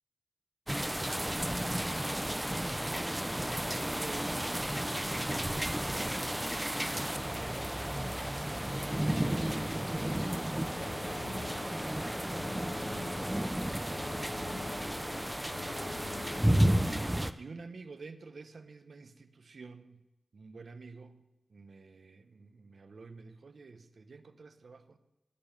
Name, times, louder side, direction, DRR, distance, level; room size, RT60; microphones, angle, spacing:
sound 1, 0.7-17.3, right 1 dB, 10° right, 0.6 m, -32 dB
sound 2, 1.7-10.5, left 1 dB, 40° left, 3.2 m, -57 dB
voice 1, 2.7-3.2 3.6-6.3 6.6-8.4 9.0-11.6 16.4-20.0 20.3-25.0, right 4 dB, 70° right, 11 dB, 0.9 m, -51 dB
sound 3, 10.7-17.0, left 4 dB, 70° left, 0.6 m, -45 dB
17.5 x 7.0 x 6.9 m, 0.97 s
wide cardioid pair, 75°, 0 cm